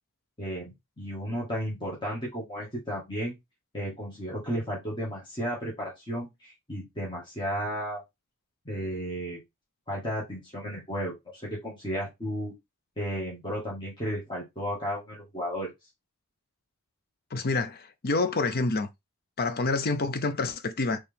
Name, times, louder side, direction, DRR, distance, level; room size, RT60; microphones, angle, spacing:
voice 1, 0.4-3.3 3.7-8.0 8.6-9.4 9.9-12.5 13.0-15.7, equal, 20° left, 1.7 m, -33 dB
voice 2, 17.3-18.9 19.4-21.0, left 3 dB, 45° left, 0.6 m, -27 dB
4.4 x 3.2 x 3.5 m
head